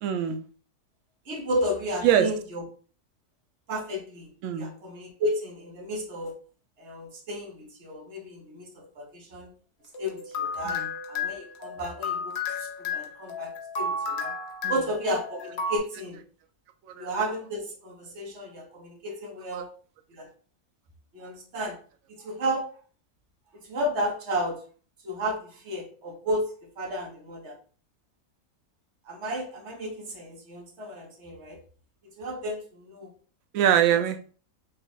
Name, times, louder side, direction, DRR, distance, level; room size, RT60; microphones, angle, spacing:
voice 1, 0.0-0.5 2.0-2.3 4.4-4.7 10.6-10.9 14.6-14.7 17.0-17.1 19.5-19.6 33.5-34.2, right 9 dB, 70° right, 7 dB, 0.8 m, -23 dB
voice 2, 1.2-2.6 3.7-6.4 6.8-9.5 10.0-10.8 11.1-14.4 14.7-16.2 16.9-19.8 20.1-20.3 21.1-21.8 22.1-22.8 23.5-24.6 25.0-27.5 29.0-31.6 32.0-33.1 33.9-34.0, equal, 50° right, 1 dB, 1.3 m, -33 dB
sound 1, 9.9-15.8, left 4 dB, 55° left, 0.9 m, -33 dB
3.9 x 2.4 x 4.0 m, 0.41 s
omnidirectional pair, 1.6 m